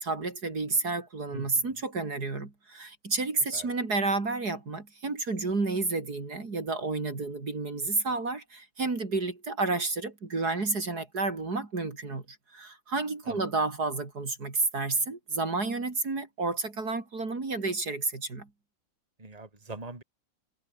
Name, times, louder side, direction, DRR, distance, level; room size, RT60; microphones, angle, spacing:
voice 1, 0.0-18.5, right 3 dB, 55° right, 4.0 m, -30 dB
voice 2, 1.3-1.8 3.5-3.7 13.2-13.4 19.2-20.0, right 2 dB, 20° right, 3.3 m, -43 dB
omnidirectional pair, 2.0 m